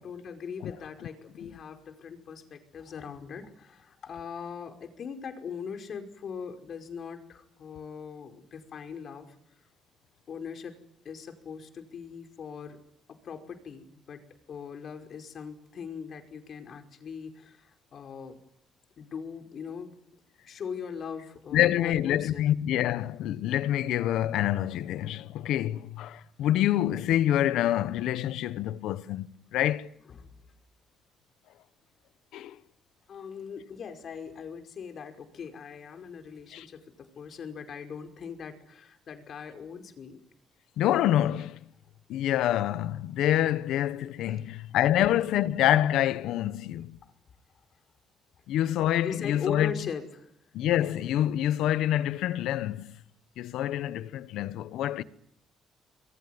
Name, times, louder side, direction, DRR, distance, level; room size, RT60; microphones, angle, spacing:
voice 1, 0.0-9.4 10.3-10.8 11.1-12.8 13.1-18.4 19.0-20.0 20.5-22.5 30.1-30.3 33.1-40.2 44.2-44.5 49.0-50.3, left 6 dB, 60° left, 5.2 m, -40 dB
voice 2, 21.5-29.9 32.3-32.6 36.5-36.7 40.8-41.6 42.1-47.0 48.5-49.7 50.5-53.0 53.4-55.0, left 12 dB, 85° left, 1.2 m, -26 dB
26.5 x 22.5 x 9.7 m
cardioid pair, 90°, 0 cm